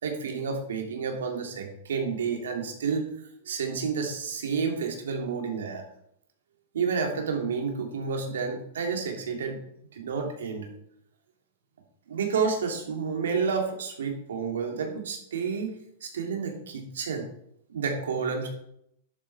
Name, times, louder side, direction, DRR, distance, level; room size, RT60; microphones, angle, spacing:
voice 1, 0.0-3.1 3.4-5.8 6.7-9.6 9.9-10.7 12.1-15.7 16.0-17.2 17.7-18.5, right 5 dB, 85° right, 2 dB, 2.9 m, -30 dB
10.5 x 8.3 x 4.3 m, 0.72 s
hypercardioid pair, 135°, 0 cm